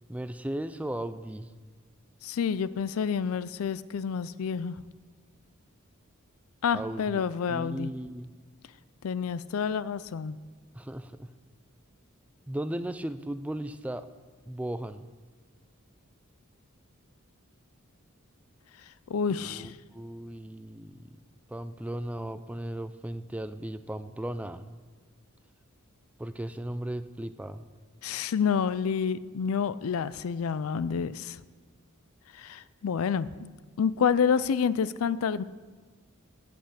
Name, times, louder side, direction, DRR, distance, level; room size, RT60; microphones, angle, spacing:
voice 1, 0.1-1.5 6.7-7.2 7.5-8.3 10.7-11.3 12.5-14.0 14.5-15.1 19.3-21.1 21.5-24.8 26.2-27.6, right 1 dB, 5° right, 12 dB, 0.3 m, -36 dB
voice 2, 2.2-4.8 6.6-7.9 9.0-10.4 19.1-19.8 28.0-31.4 32.3-33.5 33.8-35.4, left 6 dB, 85° left, 17 dB, 0.4 m, -28 dB
8.5 x 7.8 x 7.3 m, 1.4 s
head